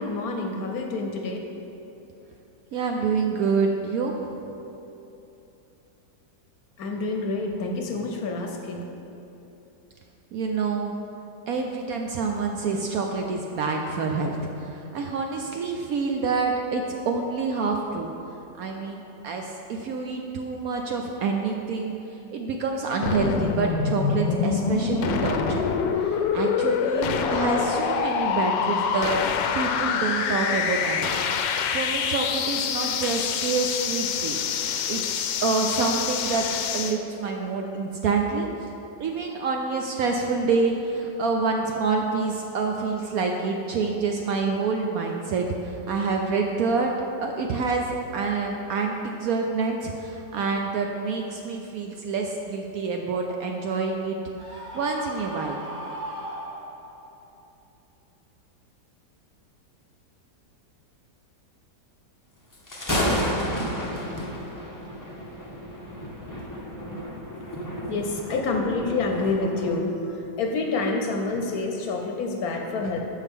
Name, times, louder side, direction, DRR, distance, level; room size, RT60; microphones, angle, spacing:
voice 1, 0.0-1.4 6.8-8.8 67.9-73.0, left 3 dB, 65° left, 2 dB, 1.1 m, -28 dB
voice 2, 2.7-4.3 10.3-10.9 11.5-18.1 18.6-22.0 22.3-25.6 26.0-29.2 29.5-31.1 31.4-34.4 34.9-38.5 39.0-46.9 47.2-54.2 54.5-55.6, right 4 dB, 70° right, 2 dB, 0.9 m, -27 dB
sound 1, 23.0-37.0, left 6 dB, 85° left, 1.2 m, -26 dB
Screaming, 54.4-57.1, equal, 85° right, 2.6 m, -37 dB
Thunder, 62.5-69.8, equal, 25° left, 0.4 m, -31 dB
10.0 x 6.5 x 3.6 m, 2.9 s
omnidirectional pair, 1.9 m